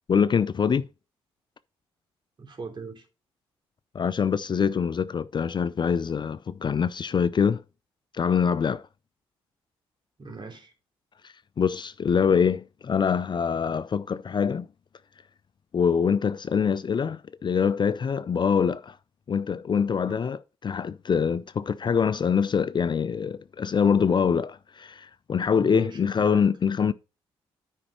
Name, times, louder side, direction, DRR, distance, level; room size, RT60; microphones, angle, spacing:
voice 1, 0.1-0.8 3.9-7.6 8.1-8.8 11.2-14.7 15.7-19.0 19.3-26.9, left 6 dB, 35° left, 0.5 m, -24 dB
voice 2, 2.4-3.1 10.2-10.7 20.1-20.2 25.6-26.5, right 4 dB, 35° right, 3.3 m, -40 dB
9.8 x 5.4 x 4.4 m
hypercardioid pair, 45°, 13 cm